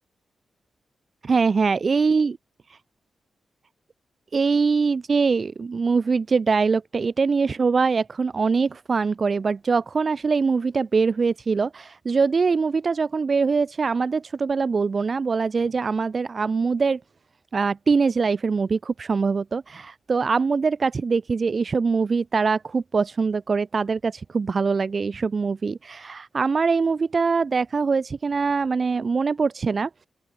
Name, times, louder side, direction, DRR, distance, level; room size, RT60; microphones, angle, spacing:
voice 1, 1.2-2.4 2.7-2.8 4.3-17.0 17.5-29.9, right 4 dB, 50° right, 1.5 m, -23 dB
open air
cardioid pair, 65°, 0 cm